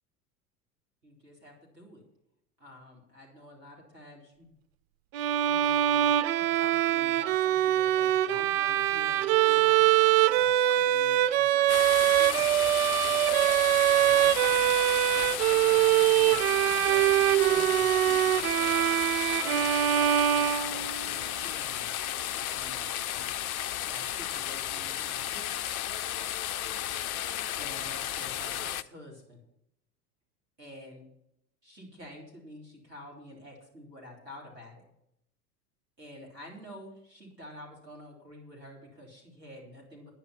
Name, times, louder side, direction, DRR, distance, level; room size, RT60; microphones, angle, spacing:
voice 1, 1.0-2.0 2.6-4.5 5.4-6.1 6.4-13.2 13.9-18.8 19.4-20.0 20.3-21.9 22.5-23.3 23.9-25.7 27.3-29.4 30.6-31.1 31.6-34.8 36.0-40.1, left 1 dB, 85° right, -2 dB, 3.8 m, -49 dB
Bowed string instrument, 5.1-21.1, right 13 dB, 40° right, 0.4 m, -24 dB
sound 1, 11.7-28.8, left 11 dB, 60° left, 0.6 m, -33 dB
10.0 x 10.0 x 5.8 m, 0.77 s
figure-of-eight pair, 80°, 48 cm